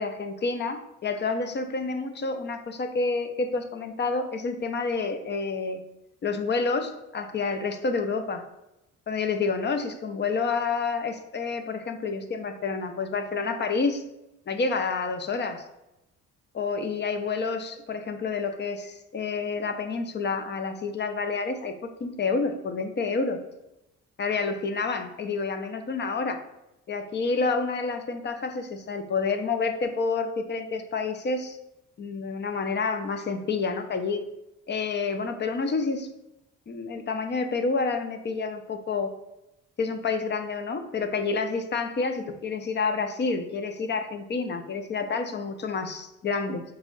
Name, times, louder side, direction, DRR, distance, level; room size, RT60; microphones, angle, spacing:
voice 1, 0.0-5.8 6.2-8.4 9.1-14.0 14.5-15.6 16.5-21.7 22.0-23.4 24.2-26.4 26.9-31.6 32.0-34.2 34.7-36.1 36.7-39.1 39.8-46.6, left 4 dB, 35° left, 7 dB, 0.5 m, -29 dB
3.7 x 3.0 x 3.8 m, 0.90 s
cardioid pair, 90°, 30 cm